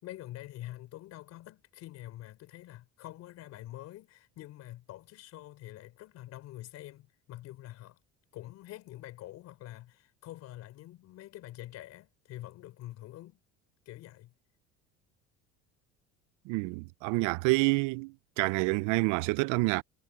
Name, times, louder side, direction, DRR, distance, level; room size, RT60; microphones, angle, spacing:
voice 1, 0.0-8.0 8.3-13.4 13.9-14.3, left 15 dB, 60° left, 4.4 m, -46 dB
voice 2, 16.5-19.8, right 25 dB, 90° right, 0.5 m, -28 dB
cardioid pair, 140°, 29 cm